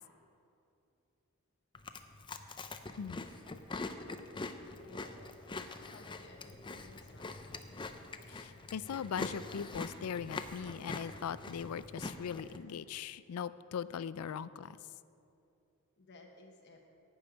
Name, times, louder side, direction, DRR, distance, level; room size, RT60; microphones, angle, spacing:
Chewing mastication, 1.7-12.6, left 3 dB, 20° left, 0.5 m, -44 dB
voice 1, 4.8-5.1 5.8-7.3 16.0-16.9, left 2 dB, 55° left, 2 dB, 1.1 m, -57 dB
voice 2, 8.3-14.8, left 7 dB, 90° left, 16 dB, 0.4 m, -40 dB
11.5 x 5.5 x 8.9 m, 2.7 s
head